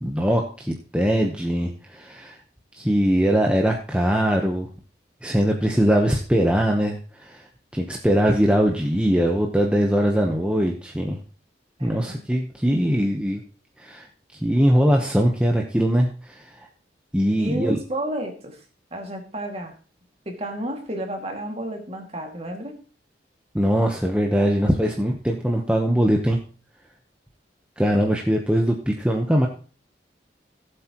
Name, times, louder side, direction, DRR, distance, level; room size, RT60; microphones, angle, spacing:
voice 1, 0.0-2.4 2.8-4.7 5.2-7.4 7.7-11.2 11.8-13.4 13.8-14.1 14.4-16.6 17.1-17.8 23.5-26.4 27.8-29.5, equal, 5° right, 1 dB, 1.0 m, -21 dB
voice 2, 11.8-12.2 17.4-18.6 18.9-19.7 20.3-22.8, right 1 dB, 35° right, 3 dB, 2.2 m, -32 dB
17.0 x 7.9 x 3.0 m, 0.37 s
head